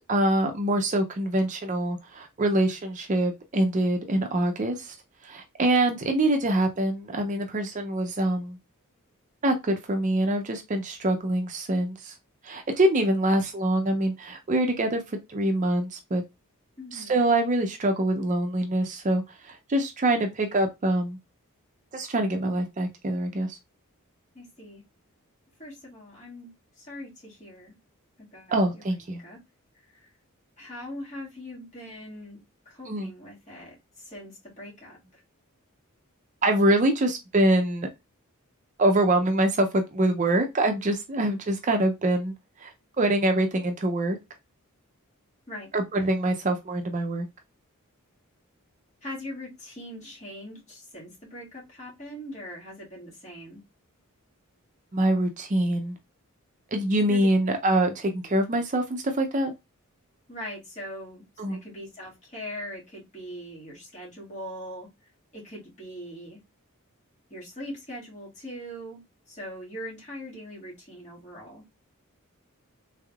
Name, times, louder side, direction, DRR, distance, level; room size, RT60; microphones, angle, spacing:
voice 1, 0.1-5.0 5.2-8.6 9.4-12.1 12.4-15.0 15.3-16.2 16.9-21.2 21.9-23.6 28.5-29.2 32.9-33.1 36.4-37.9 38.8-42.3 42.6-44.2 45.7-47.3 54.9-56.0 56.7-59.5 61.4-61.6, right 1 dB, 35° right, 0.5 m, -25 dB
voice 2, 16.8-17.2 24.3-24.8 25.6-26.5 26.8-27.8 28.3-28.8 29.2-29.4 29.9-30.1 30.6-32.4 32.7-35.2 45.5-45.7 49.0-53.6 57.1-57.3 60.3-64.9 65.3-66.4 67.3-69.0 69.3-71.6, equal, 30° left, 1.8 m, -41 dB
3.5 x 3.3 x 2.3 m
head